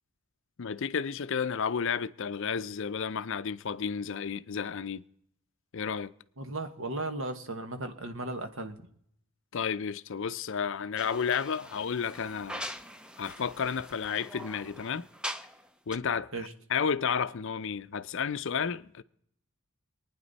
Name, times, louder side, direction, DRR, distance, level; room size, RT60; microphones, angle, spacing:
voice 1, 0.6-5.0 5.7-6.1 9.5-12.7 13.2-15.0 15.9-16.3 16.7-19.0, left 6 dB, 60° left, 0.5 m, -32 dB
voice 2, 6.4-8.9 16.3-16.5, right 2 dB, 65° right, 1.4 m, -36 dB
sound 1, 11.0-15.7 15.9-16.0, equal, 5° right, 0.5 m, -42 dB
24.5 x 9.6 x 4.1 m
head